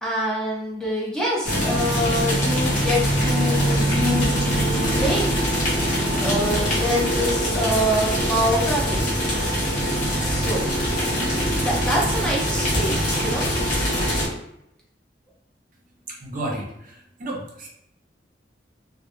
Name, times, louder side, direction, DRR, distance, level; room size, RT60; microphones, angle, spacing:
voice 1, 0.0-5.5 6.2-9.0 10.2-10.6 11.6-13.4, equal, 5° left, -5 dB, 0.6 m, -25 dB
sound 1, 1.4-14.3, equal, 50° left, 0.9 m, -23 dB
voice 2, 16.1-17.7, right 1 dB, 50° right, -1 dB, 0.6 m, -32 dB
2.2 x 2.0 x 2.9 m, 0.81 s
head